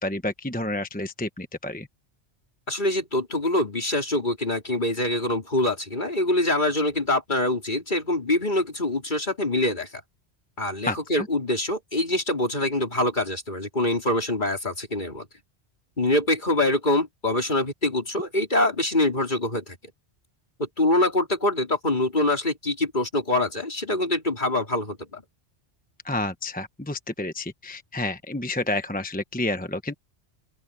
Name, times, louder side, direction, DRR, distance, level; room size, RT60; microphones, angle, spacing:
voice 1, 0.0-1.9 10.9-11.3 26.0-29.9, left 1 dB, 10° left, 1.0 m, -30 dB
voice 2, 2.7-9.9 10.6-15.3 16.0-19.8 20.6-25.2, left 1 dB, 45° left, 4.2 m, -24 dB
open air
omnidirectional pair, 1.1 m